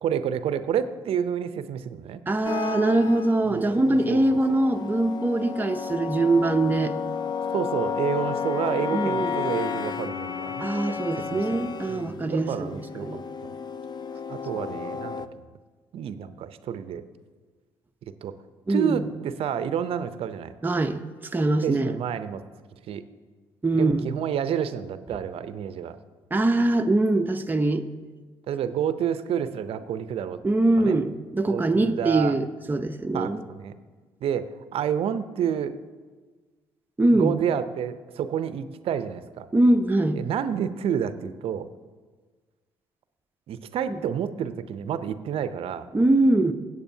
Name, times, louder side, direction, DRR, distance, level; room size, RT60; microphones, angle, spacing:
voice 1, 0.0-2.2 3.4-4.2 7.5-13.2 14.3-15.2 15.9-17.0 18.2-18.3 18.7-20.5 21.6-22.4 22.7-23.0 23.7-26.0 28.5-30.4 30.8-31.0 31.5-32.4 33.1-33.7 34.2-35.8 37.1-39.5 40.2-41.7 43.5-45.9, right 8 dB, 65° right, 12 dB, 0.6 m, -29 dB
voice 2, 2.3-6.9 8.9-9.3 10.6-13.2 18.7-19.1 20.6-21.0 21.3-22.0 23.6-24.1 26.3-27.9 30.4-33.4 37.0-37.4 39.5-40.2 43.9-44.0 45.9-46.5, right 2 dB, 15° right, 5 dB, 0.7 m, -23 dB
sound 1, 2.4-15.3, left 6 dB, 40° left, 0.5 m, -32 dB
17.0 x 8.2 x 2.8 m, 1.4 s
hypercardioid pair, 55°, 11 cm